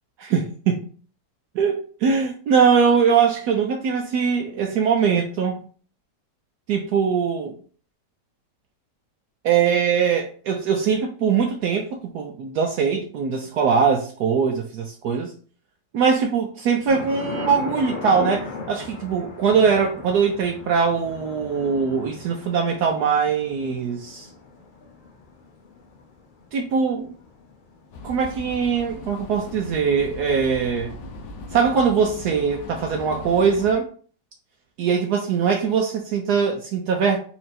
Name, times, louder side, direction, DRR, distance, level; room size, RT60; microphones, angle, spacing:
voice 1, 0.2-0.8 1.5-5.6 6.7-7.6 9.4-15.3 15.9-24.3 26.5-27.1 28.0-31.0 31.5-33.9 34.8-37.2, right 6 dB, 75° right, 1.1 m, -21 dB
sound 1, 16.9-30.7 31.0-31.1 31.4-32.2, left 4 dB, 60° left, 0.5 m, -38 dB
sound 2, 27.9-33.7, left 2 dB, 80° left, 1.4 m, -38 dB
4.3 x 2.7 x 4.2 m
omnidirectional pair, 1.9 m